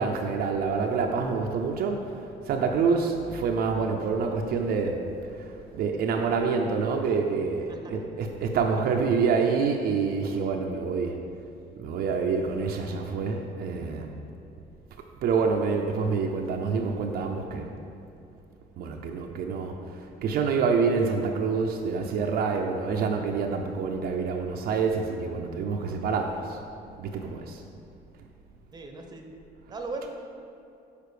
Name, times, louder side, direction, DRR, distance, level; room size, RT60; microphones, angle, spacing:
voice 1, 0.0-2.2 2.5-5.0 5.4-11.2 11.8-14.1 15.2-17.7 18.8-19.8 20.2-26.6 27.0-27.6, right 5 dB, 65° right, 2 dB, 0.6 m, -27 dB
voice 2, 28.7-29.3 29.7-30.1, right 3 dB, 25° right, 3 dB, 0.8 m, -37 dB
6.8 x 5.0 x 4.9 m, 2.6 s
cardioid pair, 110°, 17 cm